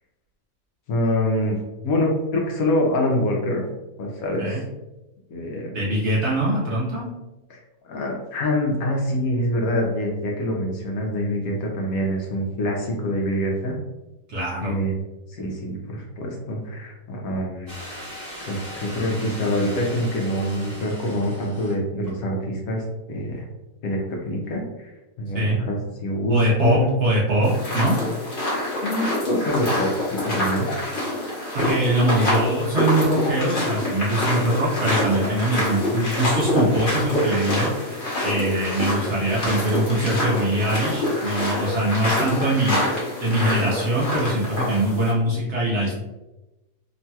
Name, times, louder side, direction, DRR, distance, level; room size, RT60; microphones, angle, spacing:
voice 1, 0.9-3.6 4.0-4.6 5.3-5.8 7.5-7.6 7.9-13.8 14.6-14.9 15.3-17.8 18.1-23.4 23.8-24.9 25.2-26.9 28.8-29.9 30.2-30.7, left 1 dB, 70° left, -1 dB, 1.0 m, -25 dB
voice 2, 5.7-7.1 14.3-14.8 25.3-25.6 26.3-28.0 31.5-42.8 43.2-45.9, right 1 dB, 60° right, -6 dB, 0.8 m, -22 dB
sound 1, 17.7-21.7 22.0-22.1, equal, 15° right, 0.9 m, -39 dB
sound 2, 27.4-45.1, left 1 dB, 40° left, 1.0 m, -26 dB
3.0 x 2.8 x 2.2 m, 1.0 s
omnidirectional pair, 1.7 m